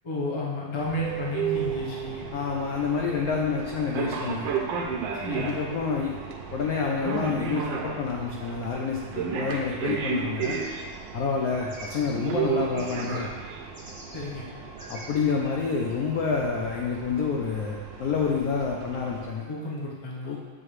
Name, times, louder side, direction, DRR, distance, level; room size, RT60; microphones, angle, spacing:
voice 1, 0.0-2.3 5.1-5.6 14.1-14.5 19.5-20.4, left 1 dB, 40° left, -5 dB, 0.4 m, -32 dB
sound 1, 0.8-19.3, right 6 dB, 75° right, 1.3 m, -34 dB
voice 2, 2.3-4.5 5.3-6.2 6.5-10.6 11.1-13.3 14.9-19.5 20.3-20.4, left 5 dB, 80° left, 0 dB, 0.8 m, -28 dB
sound 2, 10.4-13.4 13.7-14.2 14.5-15.9, right 1 dB, 20° right, 0.5 m, -45 dB
7.7 x 3.8 x 3.2 m, 1.5 s
omnidirectional pair, 2.2 m